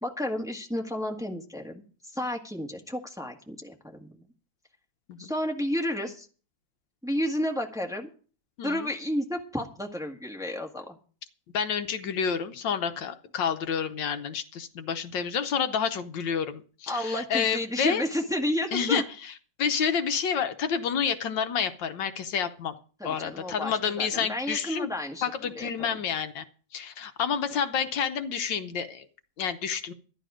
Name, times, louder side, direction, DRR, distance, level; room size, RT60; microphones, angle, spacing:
voice 1, 0.0-4.1 5.2-6.3 7.0-8.1 8.6-11.0 16.9-19.0 23.0-25.2 25.5-26.0, left 1 dB, ahead, 1 dB, 1.5 m, -31 dB
voice 2, 8.6-8.9 11.5-18.0 18.7-19.3 19.6-22.8 23.0-24.9 25.2-26.4 26.7-29.1 29.4-29.9, left 7 dB, 70° left, 9 dB, 1.5 m, -29 dB
13.0 x 10.5 x 5.0 m, 0.39 s
omnidirectional pair, 2.1 m